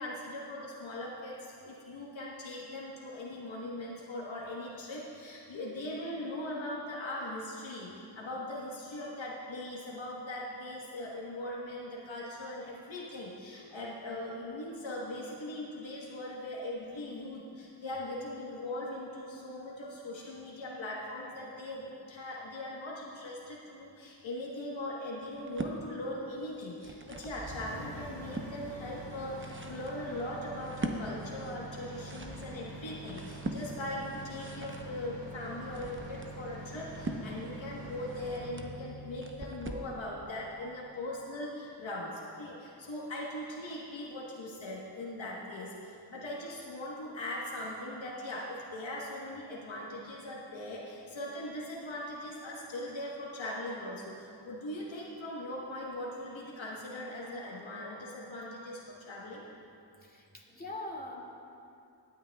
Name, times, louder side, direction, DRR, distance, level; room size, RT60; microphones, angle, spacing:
voice 1, 0.0-59.4, left 1 dB, 75° left, -4 dB, 1.4 m, -40 dB
sound 1, 25.3-25.8 26.5-27.4 27.9-28.5 29.1-39.9, right 2 dB, 25° right, 0.9 m, -42 dB
sound 2, 27.3-41.2, right 1 dB, 70° right, 2.5 m, -46 dB
voice 2, 60.0-61.2, left 2 dB, 20° left, -3 dB, 2.4 m, -42 dB
18.5 x 9.4 x 2.3 m, 2.7 s
cardioid pair, 50°, 47 cm